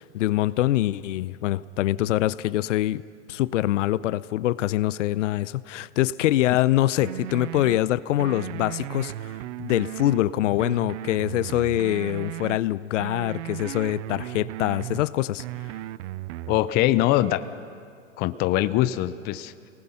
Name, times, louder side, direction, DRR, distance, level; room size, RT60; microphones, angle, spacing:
voice 1, 0.0-3.0 3.3-9.3 9.6-15.4, left 14 dB, 65° left, 18 dB, 0.7 m, -24 dB
sound 1, 7.0-7.8 8.2-10.2 10.6-12.6 13.0-15.0 15.4-16.6, right 14 dB, 65° right, 0.5 m, -35 dB
voice 2, 16.5-17.5 18.2-19.7, left 15 dB, 25° left, 13 dB, 0.5 m, -23 dB
27.0 x 19.5 x 5.7 m, 2.3 s
hypercardioid pair, 130°, 39 cm